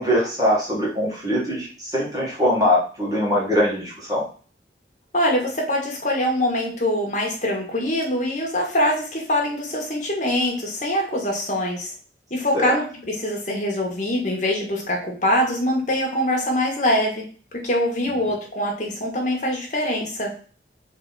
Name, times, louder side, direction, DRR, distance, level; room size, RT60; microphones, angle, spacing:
voice 1, 0.0-4.2 12.5-12.7, equal, 20° right, -6 dB, 1.8 m, -22 dB
voice 2, 5.1-11.9 12.3-17.2 17.6-20.3, left 1 dB, 45° left, -1 dB, 1.5 m, -23 dB
3.7 x 3.5 x 4.0 m, 0.40 s
head